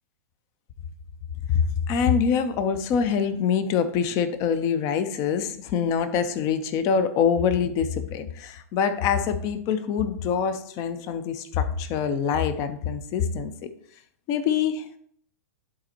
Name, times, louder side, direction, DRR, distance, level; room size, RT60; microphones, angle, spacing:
voice 1, 1.5-13.7 14.3-15.0, left 7 dB, 40° left, 11 dB, 0.7 m, -25 dB
11.0 x 4.3 x 2.9 m, 0.64 s
hypercardioid pair, 110°, 9 cm